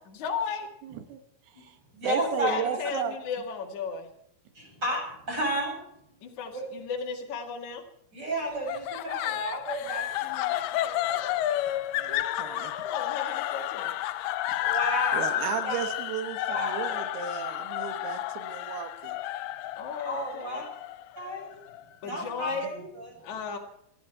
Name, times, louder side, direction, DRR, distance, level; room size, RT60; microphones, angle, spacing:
voice 1, 0.1-0.7 2.4-4.1 6.2-7.8 12.1-13.9 19.8-20.7 22.0-22.7 23.2-23.6, left 6 dB, 55° left, 0 dB, 3.0 m, -35 dB
voice 2, 0.8-1.2 1.5-1.8 2.0-3.2 12.0-12.7 15.1-19.2 22.1-22.7, right 8 dB, 85° right, 7 dB, 3.2 m, -35 dB
voice 3, 1.9-2.6 4.5-5.8 6.5-6.6 8.1-11.3 14.6-15.9 16.5-16.9 20.0-20.6 21.2-21.6 22.0-23.1, equal, 25° right, -1 dB, 8.3 m, -33 dB
sound 1, 8.7-21.8, left 13 dB, 85° left, 2.7 m, -31 dB
26.0 x 11.5 x 4.6 m, 0.77 s
omnidirectional pair, 4.5 m